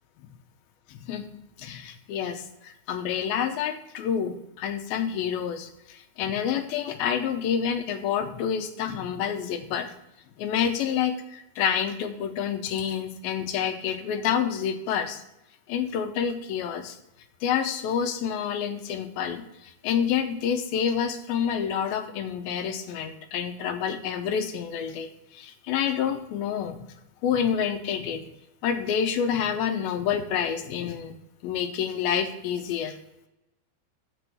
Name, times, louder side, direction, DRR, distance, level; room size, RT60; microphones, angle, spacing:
voice 1, 0.9-1.3 1.6-9.9 10.4-15.2 15.7-17.0 17.4-26.8 27.2-28.2 28.6-31.2 31.4-33.0, left 8 dB, 80° left, 7 dB, 2.4 m, -28 dB
6.8 x 6.1 x 6.8 m, 0.89 s
omnidirectional pair, 4.6 m